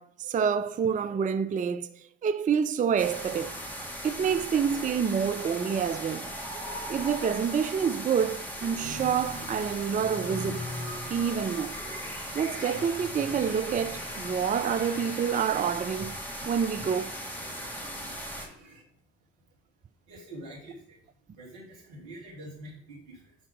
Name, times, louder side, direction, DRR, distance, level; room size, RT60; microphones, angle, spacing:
voice 1, 0.0-1.9 2.2-3.5 4.0-6.3 6.9-10.6 11.1-11.8 12.3-16.1 16.4-17.1, right 7 dB, 20° right, 0.5 m, -27 dB
sound 1, 3.0-18.5, equal, 5° left, 2.4 m, -38 dB
sound 2, 6.0-8.7 9.8-10.8 12.4-18.4, left 4 dB, 65° left, 1.3 m, -53 dB
sound 3, 8.8-15.2 15.7-16.3 16.8-18.8, left 1 dB, 55° right, 2.2 m, -44 dB
voice 2, 20.1-23.4, right 1 dB, 75° right, 2.7 m, -46 dB
10.0 x 3.6 x 5.0 m
figure-of-eight pair, 45°, 36 cm